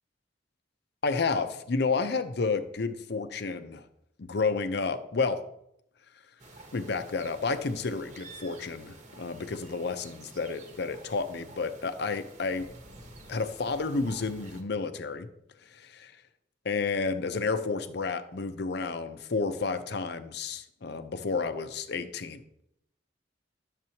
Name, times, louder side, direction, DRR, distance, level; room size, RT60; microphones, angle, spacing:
voice 1, 1.0-3.8 4.2-5.4 6.7-12.7 13.3-15.3 15.7-16.1 16.6-22.4, left 4 dB, 60° left, 10 dB, 0.6 m, -31 dB
sound 1, 6.4-14.6, right 2 dB, 40° right, 1.1 m, -50 dB
10.5 x 7.3 x 2.8 m, 0.78 s
head